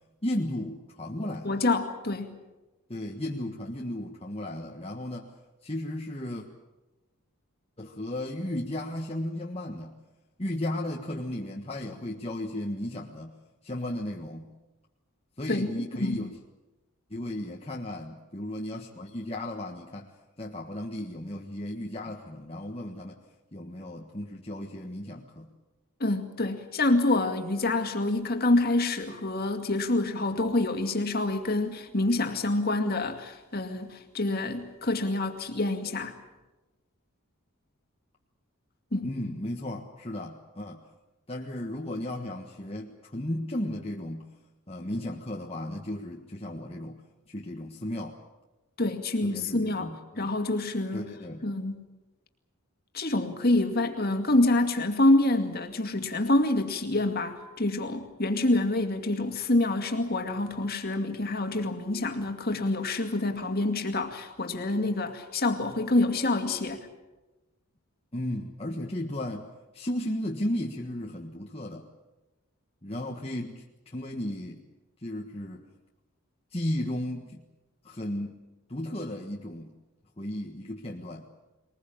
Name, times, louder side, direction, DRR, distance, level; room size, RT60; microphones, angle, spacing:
voice 1, 0.2-1.6 2.9-5.3 5.6-6.4 7.8-9.9 10.4-13.3 13.6-14.5 15.4-16.4 17.1-20.1 20.4-23.2 23.5-25.5 39.0-40.8 41.3-44.3 44.7-47.0 47.3-48.2 49.2-50.3 50.9-51.4 68.1-69.5 69.7-71.9 72.8-74.6 75.0-75.6 76.5-77.4 77.8-78.4 78.7-79.7 80.2-81.2, left 1 dB, 25° left, 1.5 m, -35 dB
voice 2, 1.4-2.4 15.5-15.7 16.0-16.3 26.0-36.1 38.9-39.1 48.8-51.1 51.4-51.8 52.9-66.9, left 2 dB, 45° left, 2.3 m, -27 dB
22.0 x 20.5 x 8.8 m
head